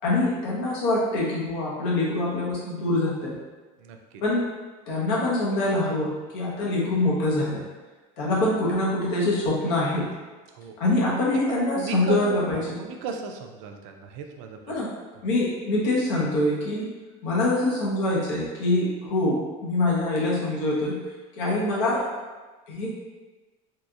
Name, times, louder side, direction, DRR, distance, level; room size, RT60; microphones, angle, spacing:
voice 1, 0.0-3.4 4.2-4.4 4.9-7.6 8.2-10.1 10.8-12.6 14.7-14.9 15.2-16.9 17.2-21.0 21.4-22.1 22.7-22.9, left 2 dB, 55° left, -5 dB, 1.0 m, -24 dB
voice 2, 11.3-14.6, right 5 dB, 80° right, 3 dB, 0.4 m, -36 dB
3.2 x 2.8 x 2.4 m, 1.3 s
cardioid pair, 180°, 16 cm